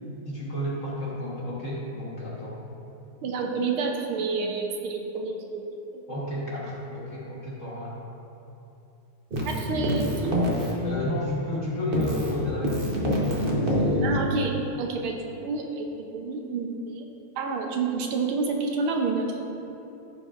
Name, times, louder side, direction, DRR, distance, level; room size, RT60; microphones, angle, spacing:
voice 1, 0.3-2.6 6.1-8.0 10.8-14.3, left 1 dB, 40° left, -6 dB, 1.3 m, -32 dB
voice 2, 3.2-5.6 5.9-6.0 9.4-10.5 14.0-17.1 17.4-19.3, right 4 dB, 75° right, 2 dB, 1.6 m, -29 dB
Keyboard (musical), 9.3-11.6 11.9-14.7, equal, 35° right, 0.9 m, -27 dB
15.0 x 6.1 x 2.5 m, 2.9 s
omnidirectional pair, 2.4 m